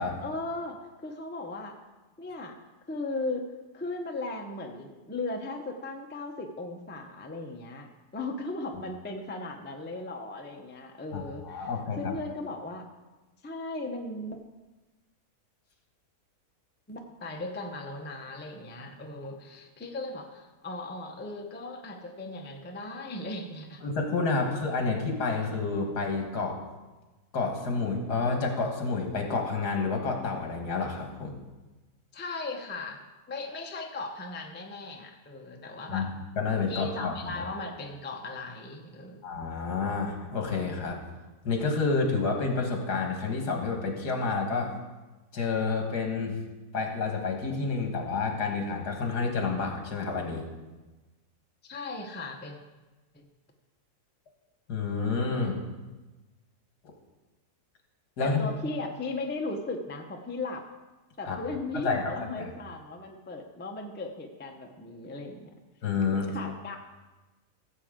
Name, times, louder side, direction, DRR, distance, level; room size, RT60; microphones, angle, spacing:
voice 1, 0.2-1.8 2.2-2.6 2.9-3.4 3.7-7.9 8.1-11.7 12.0-12.9 13.4-14.4 16.9-23.8 32.1-36.1 36.7-39.4 51.6-52.6 53.1-53.3 58.2-60.6 61.2-65.5 66.3-66.8, left 2 dB, 10° left, 2 dB, 0.5 m, -37 dB
voice 2, 11.1-12.1 23.8-26.6 27.3-31.4 35.9-36.1 36.4-37.4 39.2-41.0 41.4-44.7 45.3-46.4 46.7-50.5 54.7-55.6 58.2-58.5 61.3-61.4 61.7-62.5 65.8-66.3, left 4 dB, 75° left, 2 dB, 2.1 m, -29 dB
15.5 x 7.5 x 3.7 m, 1.2 s
omnidirectional pair, 1.7 m